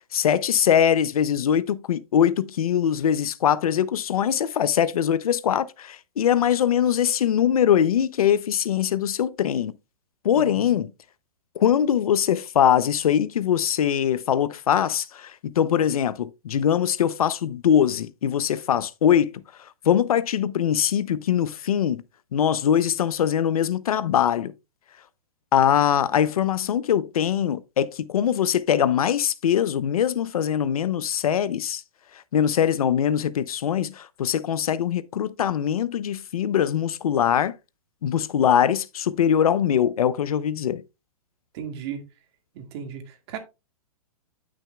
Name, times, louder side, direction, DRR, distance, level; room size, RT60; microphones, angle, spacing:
voice 1, 0.1-9.7 10.2-10.9 11.6-19.4 19.8-22.0 22.3-24.5 25.5-31.8 32.3-37.5 38.0-40.8, left 9 dB, 80° left, 0.6 m, -22 dB
voice 2, 10.3-10.7 41.5-42.0 42.6-43.4, right 8 dB, 45° right, 1.8 m, -36 dB
9.5 x 6.2 x 2.3 m
hypercardioid pair, 140°, 18 cm